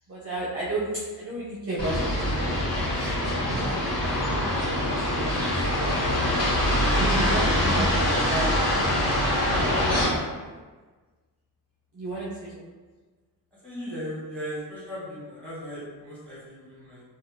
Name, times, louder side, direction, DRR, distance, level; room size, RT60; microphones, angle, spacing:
voice 1, 0.1-2.8 3.3-5.4 5.7-6.1 6.9-8.5 9.3-10.2 11.9-12.7, right 2 dB, 35° right, -7 dB, 0.5 m, -33 dB
sound 1, 1.8-10.1, left 1 dB, 50° left, 1.2 m, -24 dB
voice 2, 6.8-7.5 13.6-17.0, equal, 5° left, -9 dB, 1.1 m, -37 dB
2.6 x 2.1 x 3.2 m, 1.4 s
wide cardioid pair, 165°, 41 cm